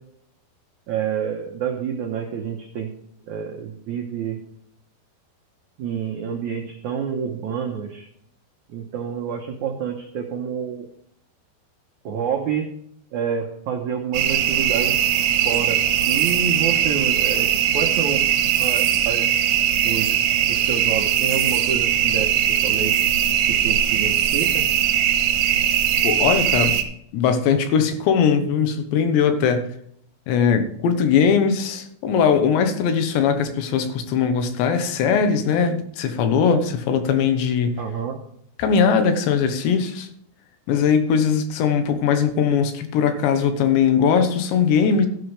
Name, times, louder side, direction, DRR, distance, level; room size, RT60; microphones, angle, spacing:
voice 1, 0.9-2.9 3.3-4.4 5.8-8.1 8.7-10.9 12.0-12.7 13.1-15.0 15.4-18.2 18.6-19.3 19.8-20.2 20.5-23.0 23.5-24.6 37.8-38.2, right 7 dB, 85° right, 2 dB, 1.7 m, -28 dB
sound 1, 14.1-26.8, right 10 dB, 70° right, 2.5 m, -20 dB
voice 2, 26.0-26.8 27.1-29.7 30.3-37.8 38.6-40.1 40.7-45.1, left 6 dB, 80° left, 8 dB, 3.4 m, -20 dB
13.0 x 11.0 x 3.4 m, 0.69 s
omnidirectional pair, 5.0 m